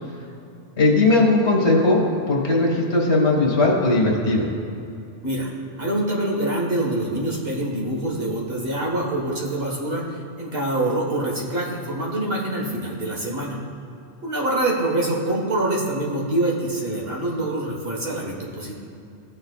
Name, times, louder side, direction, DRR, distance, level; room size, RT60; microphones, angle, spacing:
voice 1, 0.8-4.5, left 2 dB, 65° left, -1 dB, 1.8 m, -18 dB
voice 2, 5.8-13.6 14.2-18.8, right 1 dB, 55° right, -3 dB, 1.7 m, -25 dB
16.5 x 6.6 x 2.4 m, 2.7 s
omnidirectional pair, 1.2 m